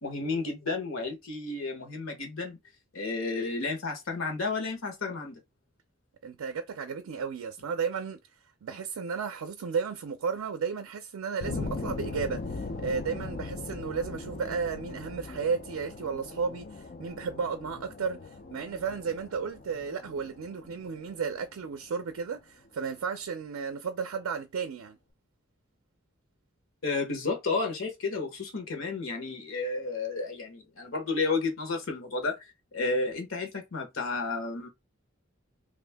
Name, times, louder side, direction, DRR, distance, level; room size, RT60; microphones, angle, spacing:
voice 1, 0.0-2.6 2.9-5.4 26.8-32.4 32.7-34.7, left 3 dB, 80° left, 1.0 m, -32 dB
voice 2, 6.2-8.2 8.6-25.0, right 6 dB, 85° right, 0.4 m, -33 dB
sound 1, 11.4-22.2, left 3 dB, 45° left, 0.4 m, -40 dB
2.6 x 2.5 x 3.3 m
head